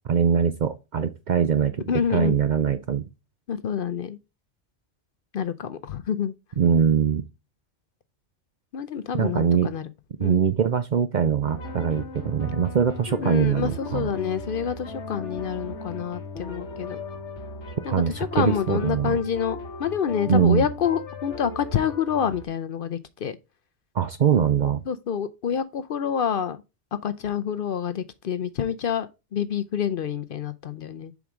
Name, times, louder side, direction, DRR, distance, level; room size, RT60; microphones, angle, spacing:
voice 1, 0.1-1.7 2.1-3.1 6.6-7.2 9.1-9.7 10.2-14.1 17.9-19.2 20.3-20.7 23.9-24.8, right 7 dB, 55° right, 0.6 m, -22 dB
voice 2, 1.9-2.4 3.5-4.2 5.3-6.3 8.7-9.8 10.2-10.4 13.2-17.0 17.8-23.4 24.9-26.6 27.0-31.1, left 8 dB, 60° left, 0.7 m, -27 dB
sound 1, 11.5-22.5, left 3 dB, 85° left, 1.5 m, -37 dB
7.2 x 4.8 x 3.6 m
omnidirectional pair, 1.2 m